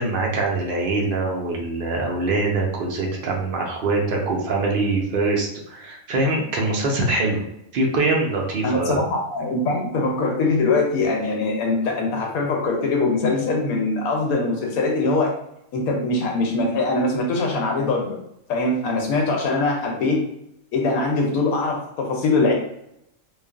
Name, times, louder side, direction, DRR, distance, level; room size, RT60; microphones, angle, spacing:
voice 1, 0.0-7.4 7.7-9.0, right 2 dB, 55° right, -1 dB, 0.6 m, -23 dB
voice 2, 8.6-15.3 15.7-18.2 18.5-20.3 20.7-22.5, left 3 dB, 80° left, 1 dB, 1.0 m, -22 dB
3.1 x 2.2 x 2.3 m, 0.79 s
omnidirectional pair, 1.5 m